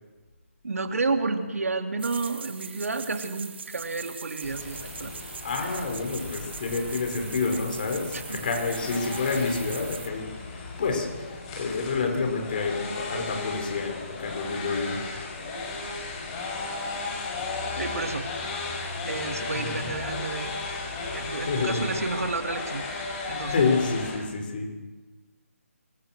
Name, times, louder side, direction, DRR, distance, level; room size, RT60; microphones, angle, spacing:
voice 1, 0.6-5.1 5.6-5.8 8.1-8.4 17.8-18.3 19.0-20.6 21.1-22.9 23.3-23.7, right 3 dB, 75° right, 6 dB, 3.0 m, -31 dB
sound 1, 2.0-10.1, right 6 dB, 45° right, 1.8 m, -41 dB
sound 2, 4.4-24.2, left 3 dB, 20° left, 6.0 m, -35 dB
voice 2, 5.4-15.0 19.5-19.9 21.3-21.8 23.4-24.7, left 4 dB, 35° left, 2 dB, 6.0 m, -29 dB
26.5 x 23.5 x 6.4 m, 1.3 s
hypercardioid pair, 165°, 8 cm